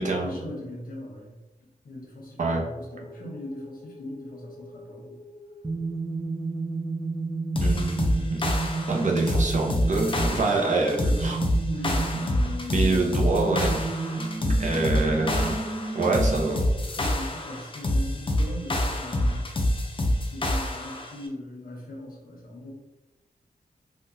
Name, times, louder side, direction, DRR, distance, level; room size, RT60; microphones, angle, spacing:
voice 1, 0.1-1.3 1.8-5.2 11.7-12.3 14.1-15.3 16.9-19.4 20.2-22.7, left 1 dB, 85° left, -2 dB, 1.0 m, -40 dB
sound 1, 2.7-16.6, right 3 dB, 15° right, 0.5 m, -32 dB
sound 2, 7.6-21.1, left 1 dB, 35° left, 0.5 m, -26 dB
voice 2, 7.6-8.4 8.9-11.4 12.7-13.8 14.1-14.2 14.6-15.6 15.9-16.6, right 3 dB, 55° right, 0 dB, 0.7 m, -26 dB
3.6 x 2.3 x 2.7 m, 1.1 s
wide cardioid pair, 105°, 15 cm